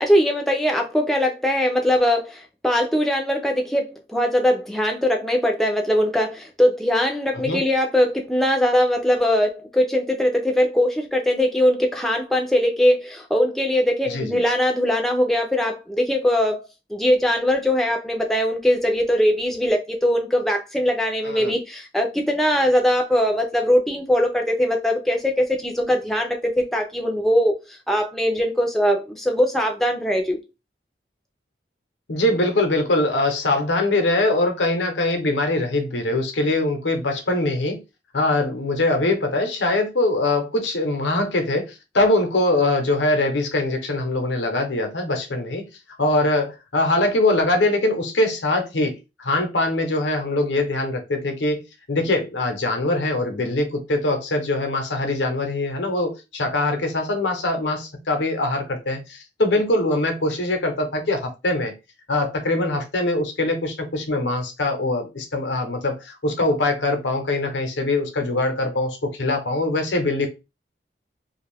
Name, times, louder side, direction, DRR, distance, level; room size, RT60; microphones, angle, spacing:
voice 1, 0.0-16.6 16.9-30.4, equal, ahead, 0.4 m, -21 dB
voice 2, 14.1-14.4 21.2-21.5 32.1-37.8 38.1-45.6 46.0-51.6 51.9-61.7 62.1-70.3, left 2 dB, 90° left, 0.8 m, -22 dB
2.5 x 2.3 x 3.3 m
head